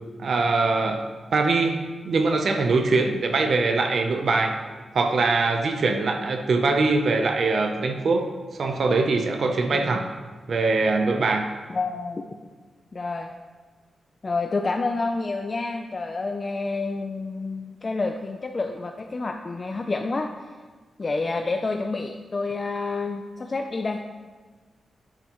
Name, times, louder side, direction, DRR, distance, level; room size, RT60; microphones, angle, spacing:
voice 1, 0.2-1.0 1.3-4.6 4.9-8.3 8.6-10.0 10.5-11.4, right 3 dB, 60° right, 5 dB, 0.7 m, -22 dB
voice 2, 9.7-10.1 11.7-12.2 12.9-13.3 14.2-20.3 21.0-24.0, left 3 dB, 35° left, 4 dB, 0.5 m, -28 dB
10.5 x 8.8 x 3.1 m, 1.4 s
wide cardioid pair, 110°, 0 cm